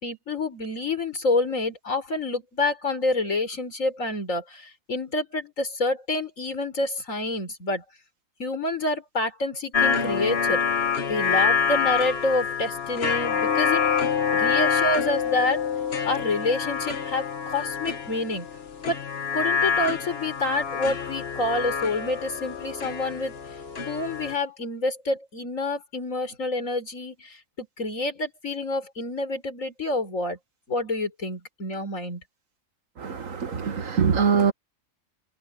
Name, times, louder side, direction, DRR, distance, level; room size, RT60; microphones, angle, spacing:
voice 1, 0.0-7.8 8.4-10.6 11.1-13.8 14.3-15.7 16.0-18.5 18.8-19.0 19.3-23.4 23.9-30.4 30.7-32.2, left 2 dB, 65° left, 4.6 m, -28 dB
sound 1, 9.7-24.4, left 6 dB, 45° left, 1.5 m, -26 dB
voice 2, 33.0-34.5, right 6 dB, 65° right, 1.8 m, -23 dB
omnidirectional pair, 1.5 m